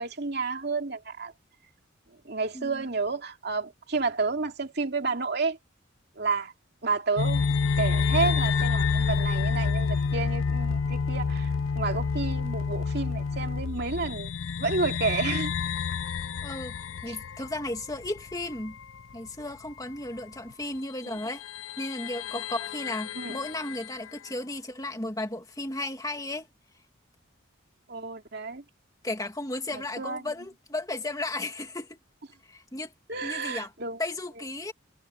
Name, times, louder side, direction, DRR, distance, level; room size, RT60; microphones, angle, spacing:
voice 1, 0.0-1.3 2.2-5.6 6.2-6.5 6.8-7.4 7.8-14.3 14.6-15.5 17.1-17.2 21.1-21.2 23.1-23.4 27.9-28.6 29.7-30.2 33.1-34.0, right 4 dB, 55° right, 2.6 m, -30 dB
sound 1, 7.2-19.1 19.4-19.5 20.5-20.6 21.1-24.2, left 5 dB, 85° left, 0.5 m, -29 dB
voice 2, 16.4-16.8 17.0-18.8 19.1-21.4 21.8-26.5 29.0-32.0 32.5-32.9 33.2-33.7 34.0-34.7, left 2 dB, 20° left, 2.1 m, -34 dB
head